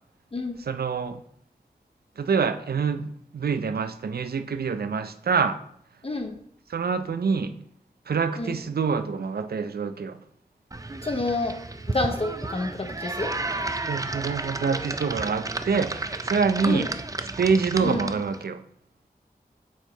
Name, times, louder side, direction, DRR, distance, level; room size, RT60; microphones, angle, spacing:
voice 1, 0.6-1.2 2.2-5.6 6.7-7.6 8.1-10.2 13.9-16.9 17.4-18.6, right 5 dB, 85° right, 0.5 m, -26 dB
voice 2, 6.0-6.3 8.4-8.5 11.0-11.6 11.9-13.3 16.6-16.9 17.8-18.0, left 2 dB, 35° left, 0.7 m, -28 dB
sound 1, 10.7-18.4, right 2 dB, 20° right, 0.4 m, -32 dB
7.3 x 4.4 x 3.9 m
wide cardioid pair, 60°, 16 cm